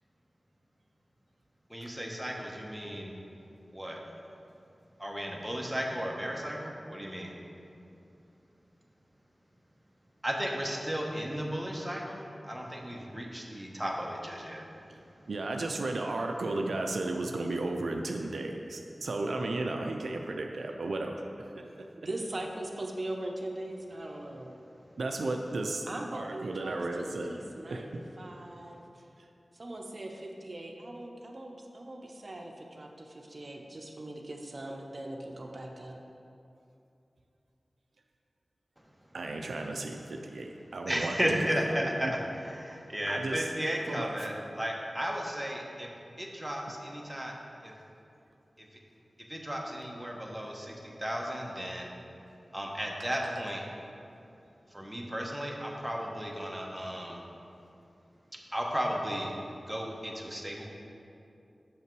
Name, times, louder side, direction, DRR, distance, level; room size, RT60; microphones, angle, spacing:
voice 1, 1.7-3.1 3.7-4.0 5.0-7.3 10.2-14.7 40.9-45.9 46.2-47.3 47.6-47.7 48.6-48.7 49.3-51.9 52.5-53.6 54.7-57.2 58.5-59.3 59.7-60.7, equal, 10° right, -1 dB, 1.1 m, -34 dB
voice 2, 15.3-21.7 25.0-25.8 26.1-27.3 27.7-27.9 39.1-41.2 41.8-42.2 43.1-43.5 43.9-44.1, right 2 dB, 85° right, 3 dB, 0.4 m, -34 dB
voice 3, 22.0-24.5 25.9-29.1 29.5-36.0, right 1 dB, 55° right, 1 dB, 0.7 m, -40 dB
6.8 x 5.6 x 4.6 m, 2.7 s
cardioid pair, 40°, 0 cm